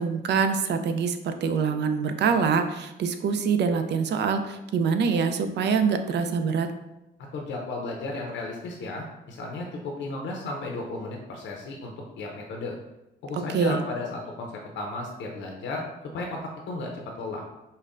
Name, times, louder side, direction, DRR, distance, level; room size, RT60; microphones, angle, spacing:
voice 1, 0.0-6.7 13.5-13.8, right 5 dB, 60° right, 8 dB, 0.4 m, -25 dB
voice 2, 7.3-12.8 13.2-15.8 16.1-17.4, left 2 dB, 70° left, 0 dB, 0.6 m, -34 dB
5.3 x 2.1 x 2.5 m, 0.94 s
cardioid pair, 90°, 20 cm